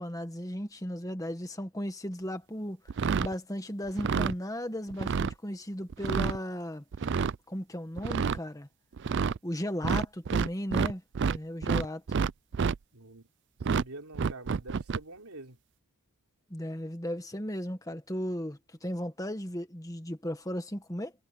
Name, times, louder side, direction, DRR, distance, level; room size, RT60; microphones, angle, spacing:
voice 1, 0.0-2.8 3.2-6.8 7.5-8.7 9.4-11.0 11.3-12.0 16.5-21.1, equal, 15° left, 1.6 m, -36 dB
sound 1, 2.9-3.3 3.9-4.3 4.9-5.3 5.9-6.4 6.9-7.3 8.0-8.4 9.0-9.4 9.8-11.4 11.6-12.8 13.6-13.8 14.1-15.0, right 5 dB, 50° right, 0.4 m, -28 dB
voice 2, 12.9-13.3 13.7-15.6, right 2 dB, 85° right, 3.5 m, -45 dB
head